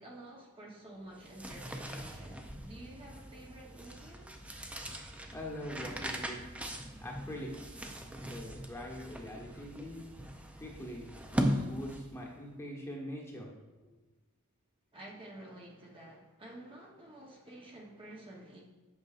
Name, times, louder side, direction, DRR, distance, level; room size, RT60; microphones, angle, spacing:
voice 1, 0.0-4.3 14.9-18.6, right 1 dB, 25° right, -2 dB, 0.9 m, -50 dB
sound 1, 1.1-12.3, equal, 5° right, 0.4 m, -39 dB
voice 2, 5.3-6.4 7.0-7.7 8.2-10.1 10.6-11.0 11.3-13.5, equal, 10° left, -2 dB, 1.1 m, -43 dB
8.4 x 6.2 x 2.4 m, 1.2 s
head